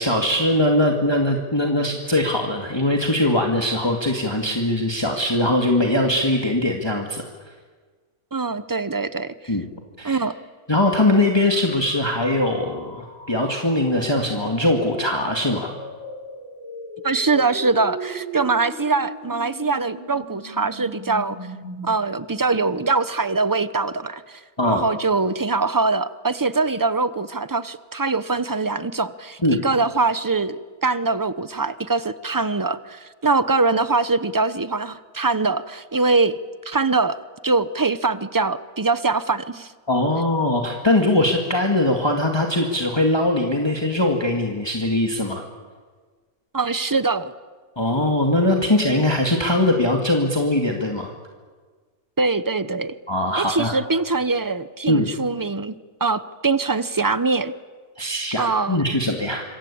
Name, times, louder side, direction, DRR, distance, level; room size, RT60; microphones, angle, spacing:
voice 1, 0.0-7.2 9.5-9.6 10.0-10.2 10.7-15.7 24.6-24.8 29.4-29.6 39.9-45.4 47.8-51.1 53.1-53.7 54.9-55.1 58.0-59.4, left 1 dB, 15° left, 1 dB, 2.2 m, -21 dB
voice 2, 8.3-9.6 10.0-10.3 17.0-21.4 21.8-36.4 36.6-37.2 37.4-39.7 46.5-47.3 52.2-52.9 53.4-55.7 56.0-57.5 58.4-58.8, right 3 dB, 20° right, 14 dB, 0.6 m, -23 dB
sound 1, 11.5-21.8, right 2 dB, 45° right, 7.6 m, -38 dB
26.5 x 24.0 x 8.6 m, 1.5 s
omnidirectional pair, 1.5 m